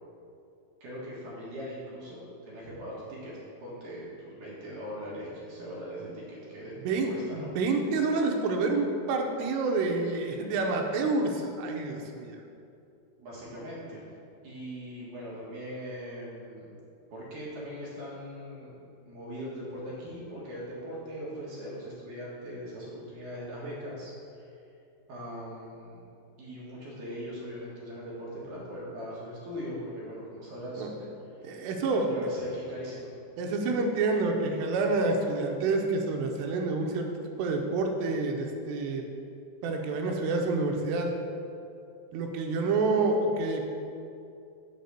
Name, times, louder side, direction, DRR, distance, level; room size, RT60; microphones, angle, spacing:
voice 1, 0.8-3.3 3.6-6.7 7.0-7.5 13.2-14.0 14.4-16.7 17.1-18.7 19.1-24.5 25.1-26.0 26.4-31.5 31.9-33.1, equal, 60° right, -7 dB, 2.6 m, -40 dB
voice 2, 6.9-12.4 30.8-30.9 31.4-32.1 33.4-37.1 37.4-39.1 39.6-41.1 42.1-43.7, right 3 dB, 85° right, 2 dB, 2.7 m, -28 dB
6.8 x 4.1 x 6.6 m, 2.5 s
omnidirectional pair, 4.9 m